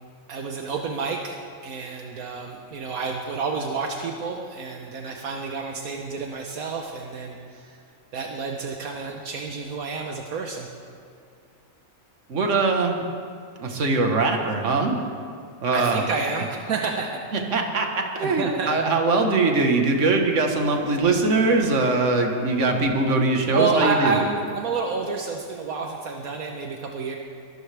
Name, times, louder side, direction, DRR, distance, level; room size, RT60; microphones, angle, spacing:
voice 1, 0.3-7.8 8.1-10.7 15.7-17.2 17.5-17.7 18.2-18.7 23.5-27.2, right 4 dB, 75° right, 2 dB, 1.4 m, -29 dB
voice 2, 12.3-13.0 13.6-15.0 15.6-16.0 17.3-24.2, right 3 dB, 55° right, 3 dB, 1.7 m, -22 dB
22.5 x 13.5 x 3.4 m, 2.4 s
omnidirectional pair, 1.5 m